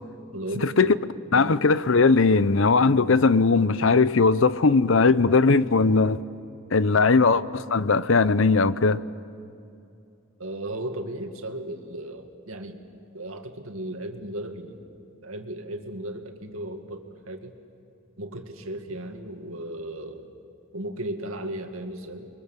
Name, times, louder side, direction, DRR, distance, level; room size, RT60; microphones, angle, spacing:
voice 1, 0.3-1.0 1.3-1.6 10.4-12.8 13.1-14.8 15.2-17.6 18.2-20.3 20.7-22.3, right 1 dB, 80° right, 2.2 m, -35 dB
voice 2, 1.3-6.2 6.7-9.0, left 4 dB, 65° left, 0.7 m, -19 dB
30.0 x 23.5 x 7.3 m
head